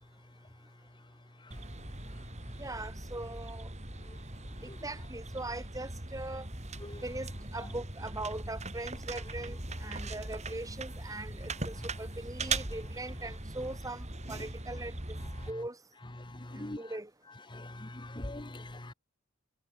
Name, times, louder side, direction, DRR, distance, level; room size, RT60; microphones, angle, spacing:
sound 1, 1.5-15.5, right 2 dB, 35° right, 4.3 m, -40 dB
voice 1, 2.6-3.7 4.8-6.5 7.0-15.2 15.5-15.8 16.6-17.1, right 2 dB, 15° right, 2.1 m, -41 dB
voice 2, 16.2-16.8 17.5-18.9, left 1 dB, 20° left, 1.2 m, -42 dB
head